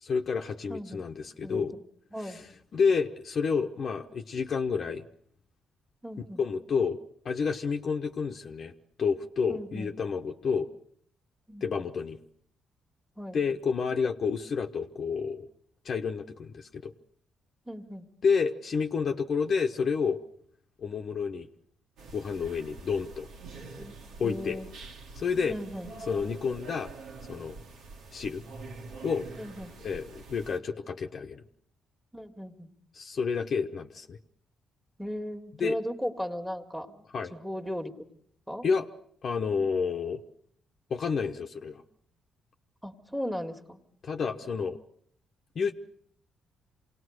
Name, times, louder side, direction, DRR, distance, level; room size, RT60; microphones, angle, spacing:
voice 1, 0.0-1.7 2.2-2.5 2.7-5.0 6.4-7.0 7.2-8.7 9.0-10.7 11.6-12.2 13.3-15.5 15.8-16.9 18.2-20.2 20.8-21.5 22.1-23.3 24.2-24.6 25.1-25.6 26.1-26.9 27.3-27.6 28.1-28.4 29.0-29.3 29.8-31.4 32.9-34.2 35.6-35.8 37.1-37.3 38.6-38.9 39.2-40.2 40.9-41.8 44.0-44.8 45.5-45.7, left 5 dB, 50° left, 3 dB, 1.1 m, -29 dB
voice 2, 0.7-1.1 1.4-1.7 2.1-2.4 6.0-6.4 9.5-9.9 11.5-11.8 13.2-13.4 17.7-18.1 23.8-24.7 25.5-25.9 29.4-29.8 32.1-32.7 35.0-37.9 38.5-38.6 42.8-43.8, equal, ahead, 4 dB, 2.0 m, -37 dB
sound 1, 22.0-30.6, right 3 dB, 80° right, 2.4 m, -46 dB
26.5 x 18.5 x 6.5 m, 0.65 s
cardioid pair, 90°, 0 cm